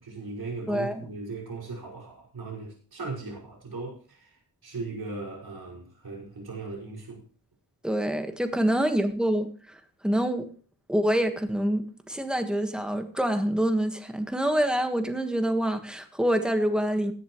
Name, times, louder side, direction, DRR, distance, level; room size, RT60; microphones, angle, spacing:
voice 1, 0.0-4.4 4.6-7.2, right 3 dB, 90° right, -2 dB, 5.7 m, -38 dB
voice 2, 0.7-1.0 7.8-9.8 10.0-10.5 10.9-17.1, right 1 dB, ahead, 7 dB, 1.5 m, -26 dB
16.5 x 10.5 x 3.1 m, 0.41 s
wide cardioid pair, 125°, 36 cm